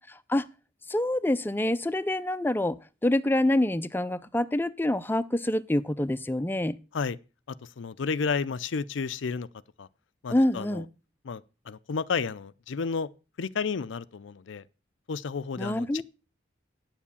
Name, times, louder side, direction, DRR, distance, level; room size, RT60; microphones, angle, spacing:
voice 1, 0.1-0.5 0.9-2.8 3.0-6.8 10.3-10.9 15.6-16.0, left 1 dB, 10° left, 0.5 m, -26 dB
voice 2, 7.8-9.5 9.8-9.9 10.2-10.8 11.2-13.1 13.4-14.6 15.1-16.0, left 5 dB, 85° left, 0.5 m, -31 dB
9.4 x 7.3 x 7.0 m
head